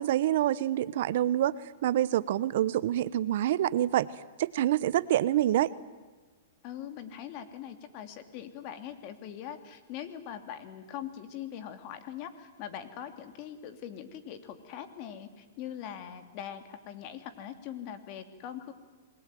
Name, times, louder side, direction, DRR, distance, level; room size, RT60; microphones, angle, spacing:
voice 1, 0.0-1.6 1.8-4.1 4.4-5.7, right 13 dB, 60° right, 18 dB, 1.0 m, -26 dB
voice 2, 6.6-18.7, left 9 dB, 45° left, 8 dB, 3.1 m, -42 dB
27.5 x 21.5 x 9.4 m, 1.3 s
hypercardioid pair, 130°, 0 cm